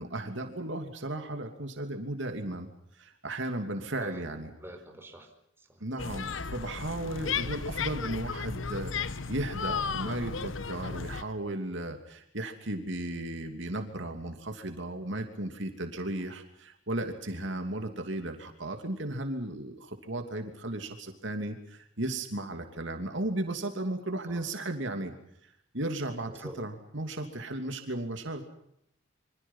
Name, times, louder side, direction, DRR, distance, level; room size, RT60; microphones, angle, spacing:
voice 1, 0.0-2.7 2.9-4.5 5.8-25.1 25.4-28.5, right 1 dB, 65° right, 5 dB, 2.9 m, -35 dB
voice 2, 4.6-5.3 5.6-5.8 16.0-16.3 24.3-24.4 26.2-26.6, right 1 dB, 10° right, 3 dB, 4.7 m, -47 dB
sound 1, 6.0-11.2, left 5 dB, 75° left, 1.1 m, -34 dB
27.0 x 26.0 x 5.7 m, 0.75 s
head